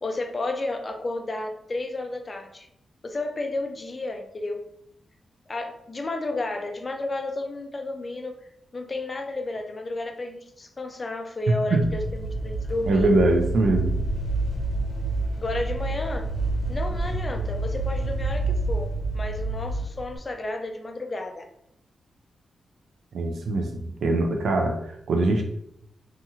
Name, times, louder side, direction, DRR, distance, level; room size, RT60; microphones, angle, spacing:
voice 1, 0.0-2.7 3.0-4.7 5.5-8.4 8.7-13.1 15.4-16.3 16.7-21.5, left 2 dB, 30° left, 4 dB, 0.3 m, -32 dB
sound 1, 11.8-20.2, right 2 dB, 65° left, 0.7 m, -28 dB
voice 2, 12.9-14.0 23.1-25.4, right 2 dB, 75° right, 3 dB, 0.3 m, -22 dB
2.6 x 2.4 x 2.7 m, 0.74 s
wide cardioid pair, 120°, 0 cm